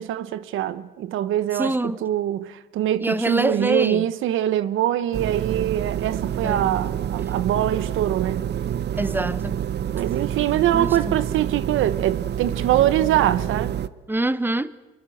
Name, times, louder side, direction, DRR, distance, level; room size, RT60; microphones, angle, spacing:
voice 1, 0.0-8.4 9.9-13.8, right 12 dB, 85° right, 1.1 m, -23 dB
voice 2, 1.5-2.0 3.0-4.1 6.4-6.8 9.0-9.6 10.7-11.2 14.1-14.7, right 2 dB, 10° right, 1.0 m, -25 dB
sound 1, 5.1-13.9, right 9 dB, 60° right, 0.9 m, -28 dB
27.0 x 22.5 x 7.9 m
cardioid pair, 90°, 20 cm